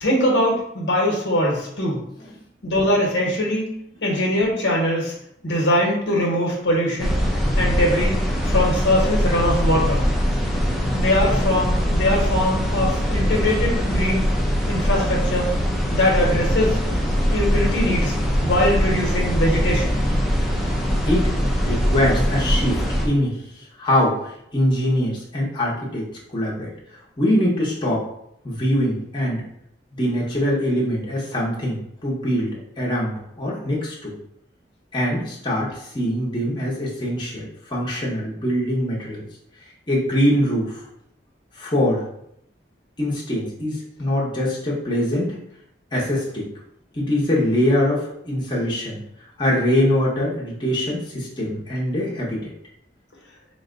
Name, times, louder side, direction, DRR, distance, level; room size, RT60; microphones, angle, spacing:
voice 1, 0.0-2.0 2.6-3.7 4.0-5.1 5.4-7.2 7.6-8.2 8.4-10.0 10.9-14.2 14.7-15.5 15.9-16.8 17.3-19.9, left 1 dB, 80° left, -2 dB, 1.1 m, -21 dB
sound 1, 7.0-23.1, equal, ahead, 0.5 m, -22 dB
voice 2, 21.6-28.1 28.4-29.4 29.9-34.1 34.9-39.2 39.9-40.8 41.5-42.0 43.0-45.4 45.9-46.5 46.9-49.0 49.4-52.5, equal, 25° left, -5 dB, 0.9 m, -23 dB
4.0 x 2.2 x 3.8 m, 0.74 s
head